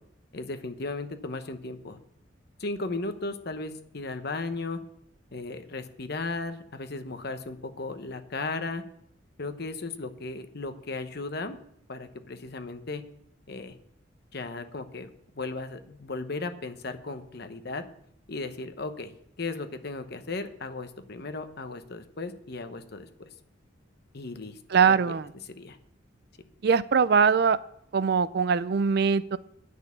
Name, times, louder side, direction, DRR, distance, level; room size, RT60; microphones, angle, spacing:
voice 1, 0.3-2.0 2.6-4.8 5.3-8.8 9.4-11.6 11.9-13.0 13.5-13.7 14.3-15.1 15.3-17.8 18.3-19.1 19.4-23.3 24.1-24.6 24.8-25.1 25.6-25.8, left 3 dB, 55° left, 8 dB, 1.0 m, -36 dB
voice 2, 24.7-25.3 26.6-27.6 27.9-29.4, right 6 dB, 55° right, 17 dB, 0.4 m, -22 dB
9.8 x 6.5 x 8.2 m, 0.73 s
head